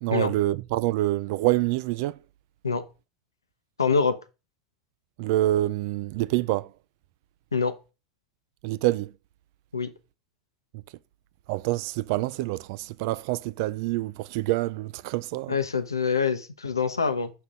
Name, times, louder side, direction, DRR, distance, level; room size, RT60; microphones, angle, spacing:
voice 1, 0.0-2.2 5.2-6.7 8.6-9.1 11.5-15.6, right 16 dB, 60° right, 0.4 m, -26 dB
voice 2, 3.8-4.2 7.5-7.7 9.7-9.9 15.5-17.3, left 5 dB, 90° left, 0.8 m, -25 dB
6.5 x 5.5 x 3.7 m
figure-of-eight pair, 80°, 2 cm